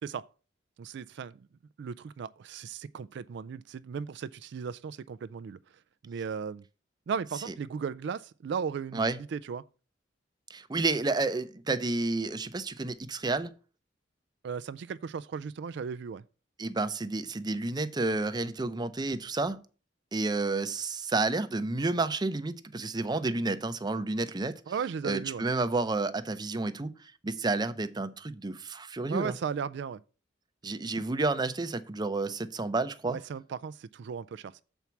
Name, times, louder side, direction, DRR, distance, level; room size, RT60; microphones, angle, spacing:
voice 1, 0.8-1.4 1.8-5.6 6.0-6.6 7.1-9.6 14.4-16.2 24.7-25.4 29.0-30.0 33.1-34.6, right 6 dB, 70° right, 0.3 m, -36 dB
voice 2, 10.5-13.5 16.6-19.6 20.1-24.6 25.0-29.4 30.6-33.2, right 3 dB, 25° right, 0.6 m, -30 dB
7.1 x 4.6 x 6.9 m
head